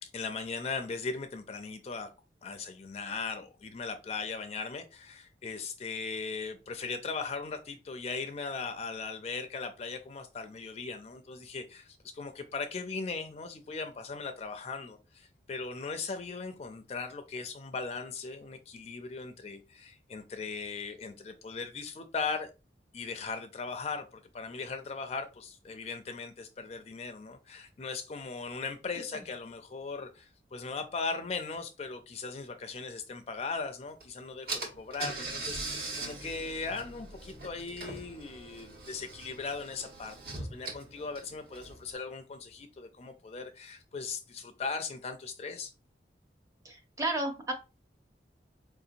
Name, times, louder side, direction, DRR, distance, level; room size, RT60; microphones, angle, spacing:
voice 1, 0.0-2.1 2.4-22.5 22.9-45.7, left 4 dB, 35° left, 0.4 m, -38 dB
Car / Engine, 34.0-34.1 34.5-41.9, right 2 dB, 60° right, 1.3 m, -41 dB
voice 2, 46.6-47.5, right 2 dB, 20° right, 0.7 m, -33 dB
4.5 x 2.8 x 2.5 m
head